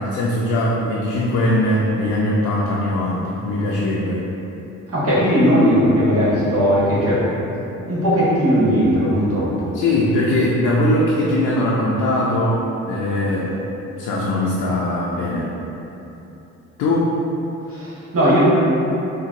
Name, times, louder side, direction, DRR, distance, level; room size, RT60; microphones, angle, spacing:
voice 1, 0.0-4.2 9.7-13.6 14.0-15.5 16.8-17.2, left 1 dB, 85° left, -5 dB, 0.4 m, -20 dB
voice 2, 4.9-7.2 7.9-9.7 17.7-18.4, equal, 50° right, -9 dB, 1.2 m, -17 dB
3.8 x 2.2 x 2.5 m, 3.0 s
cardioid pair, 90°, 30 cm